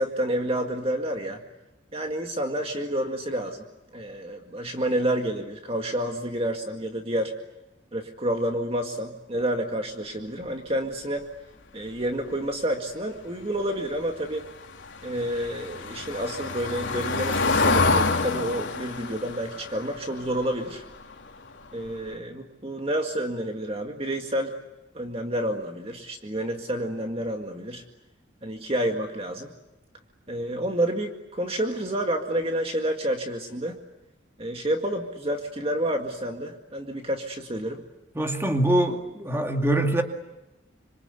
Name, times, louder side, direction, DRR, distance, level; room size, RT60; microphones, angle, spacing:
voice 1, 0.0-1.4 1.9-3.7 3.9-7.3 7.9-11.3 11.7-14.5 15.0-20.8 21.7-24.6 24.9-27.8 28.4-29.5 30.3-33.8 34.4-37.8, right 1 dB, 30° right, 3 dB, 2.0 m, -29 dB
Car passing by / Engine, 14.3-21.3 21.6-21.9 22.1-22.2, left 3 dB, 75° left, 3.0 m, -27 dB
voice 2, 38.2-40.0, right 1 dB, 15° right, 3 dB, 2.3 m, -23 dB
27.5 x 26.0 x 8.3 m, 0.97 s
head